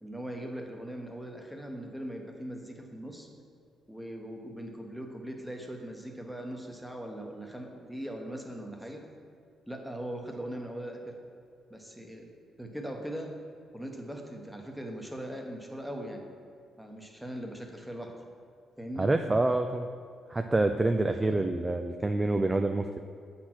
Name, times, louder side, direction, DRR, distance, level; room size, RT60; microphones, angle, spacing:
voice 1, 0.0-3.3 3.9-9.1 9.7-11.1 11.7-12.3 12.6-13.3 13.7-16.3 16.8-18.1 18.8-19.1 21.3-21.5, right 1 dB, ahead, 2 dB, 1.0 m, -40 dB
voice 2, 19.0-19.9 20.3-23.0, right 2 dB, 20° right, 6 dB, 0.3 m, -27 dB
8.0 x 4.2 x 6.1 m, 2.3 s
cardioid pair, 100°, 0 cm